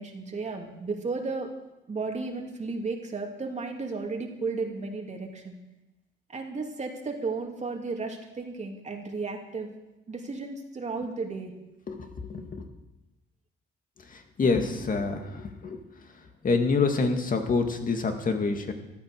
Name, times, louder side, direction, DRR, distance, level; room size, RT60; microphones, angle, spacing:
voice 1, 0.0-1.5 1.9-5.6 6.3-9.7 10.1-11.5, right 3 dB, 35° right, 1 dB, 2.6 m, -34 dB
voice 2, 11.9-12.6 14.1-15.8 16.4-18.7, left 4 dB, 45° left, 5 dB, 2.3 m, -27 dB
14.5 x 12.5 x 6.8 m, 0.96 s
cardioid pair, 90°, 20 cm